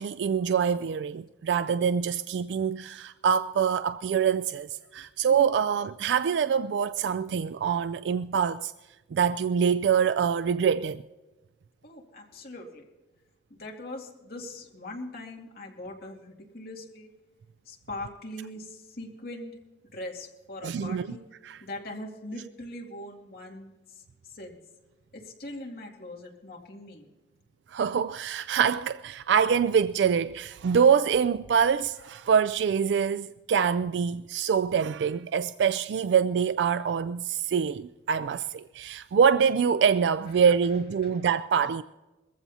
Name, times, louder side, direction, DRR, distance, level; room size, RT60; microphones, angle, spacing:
voice 1, 0.0-8.7 9.1-11.0 20.6-21.2 21.4-21.6 27.7-41.8, right 7 dB, 75° right, 0.3 m, -25 dB
voice 2, 11.8-12.9 13.5-17.1 17.7-19.5 19.9-21.2 21.6-23.7 24.3-24.6 25.1-27.1, left 1 dB, 55° left, 2.4 m, -41 dB
21.5 x 15.0 x 2.8 m
head